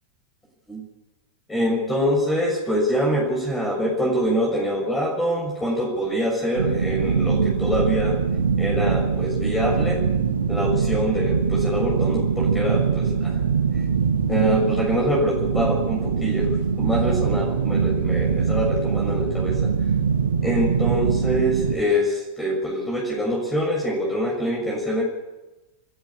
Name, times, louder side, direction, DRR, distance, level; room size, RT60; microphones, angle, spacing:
voice 1, 1.5-8.2 8.6-10.0 10.5-13.4 14.3-19.7 20.4-25.0, equal, 10° left, -2 dB, 6.8 m, -24 dB
sound 1, 6.6-21.8, right 6 dB, 70° right, 1.3 m, -23 dB
30.0 x 10.5 x 8.6 m, 1.1 s
figure-of-eight pair, 90°, 0 cm